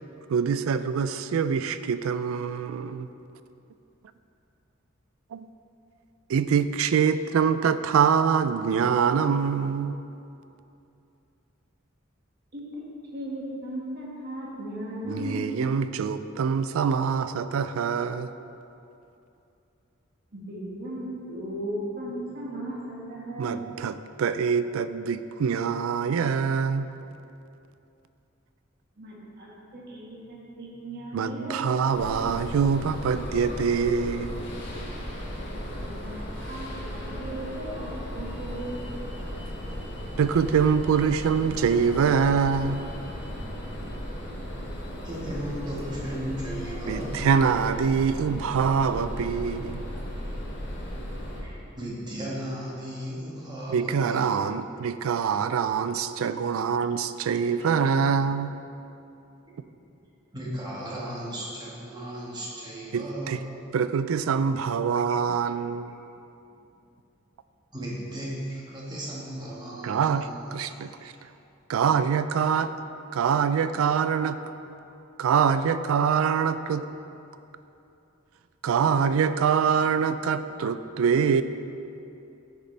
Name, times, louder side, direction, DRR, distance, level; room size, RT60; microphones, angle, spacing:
voice 1, 0.3-3.1 6.3-10.0 15.1-18.3 23.4-26.9 31.1-34.4 40.2-42.8 46.9-49.8 53.7-58.5 62.9-63.4 63.7-65.9 69.8-70.9 71.7-72.7 73.1-74.4 75.2-76.8 78.6-81.4, right 6 dB, 85° right, 13 dB, 0.3 m, -24 dB
voice 2, 13.1-15.7 20.3-23.7 29.0-31.9 35.9-39.1, right 1 dB, 50° right, -5 dB, 1.8 m, -36 dB
sound 1, 31.9-51.4, equal, 60° left, 1.7 m, -36 dB
voice 3, 45.0-47.3 51.3-54.3 57.6-57.7 60.3-63.5 67.7-71.1, equal, 20° right, -5 dB, 1.4 m, -36 dB
9.5 x 6.7 x 3.3 m, 2.8 s
head